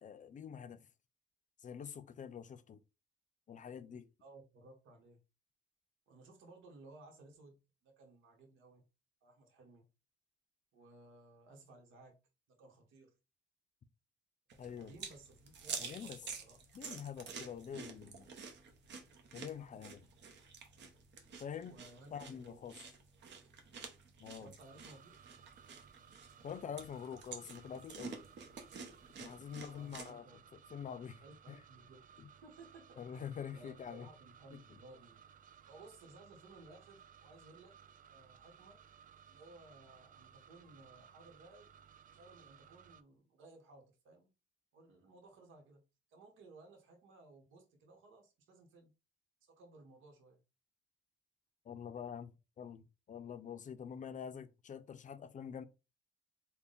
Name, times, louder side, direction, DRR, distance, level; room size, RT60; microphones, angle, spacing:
voice 1, 0.0-0.8 1.6-2.8 3.5-4.1 14.6-14.9 15.8-16.2 16.7-18.3 19.3-20.0 21.4-21.8 22.1-22.8 24.2-24.5 26.4-28.2 29.2-30.3 30.5-31.2 31.5-31.6 32.2-32.3 33.0-34.1 34.5-34.8 51.6-55.6, left 8 dB, 40° left, 0.5 m, -46 dB
voice 2, 4.2-5.2 6.1-8.8 9.2-9.9 10.7-12.2 12.5-13.1 14.8-16.1 16.4-16.6 21.6-22.6 24.4-25.1 29.5-30.4 31.2-32.0 32.4-35.2 35.7-37.8 38.1-38.8 39.3-41.7 42.1-44.3 44.7-45.8 46.1-48.9 49.4-50.4, right 2 dB, 80° right, 1.1 m, -59 dB
sound 1, 14.5-30.1, right 5 dB, 65° right, 0.9 m, -50 dB
sound 2, 24.6-43.0, right 8 dB, 45° right, 0.4 m, -61 dB
3.5 x 2.2 x 3.8 m
cardioid pair, 90°, 20 cm